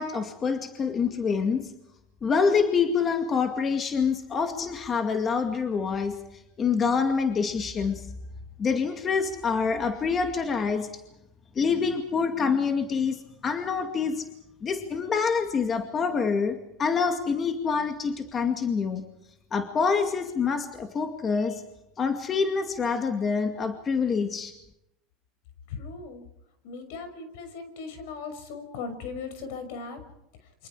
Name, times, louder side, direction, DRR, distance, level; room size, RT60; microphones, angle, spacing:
voice 1, 0.0-1.7 2.2-6.2 6.6-8.1 8.6-10.9 11.6-14.3 14.6-19.0 19.5-21.6 22.0-24.5, left 5 dB, 30° left, 5 dB, 2.2 m, -26 dB
voice 2, 25.7-26.3 26.6-30.0, left 4 dB, 75° left, 8 dB, 6.0 m, -38 dB
28.5 x 25.0 x 4.9 m, 0.85 s
supercardioid pair, 120°, 0 cm